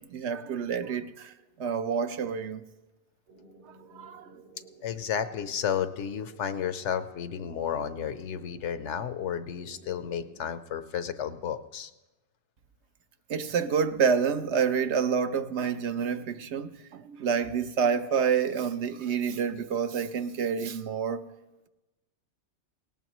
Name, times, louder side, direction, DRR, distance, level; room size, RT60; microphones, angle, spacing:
voice 1, 0.0-1.3 1.6-2.6 3.9-4.3 13.3-21.2, right 6 dB, 70° right, 1.0 m, -28 dB
sound 1, 3.3-10.5, right 2 dB, 90° right, 4.3 m, -54 dB
voice 2, 4.8-11.9, left 8 dB, 75° left, 1.0 m, -32 dB
18.5 x 18.5 x 3.0 m
omnidirectional pair, 1.2 m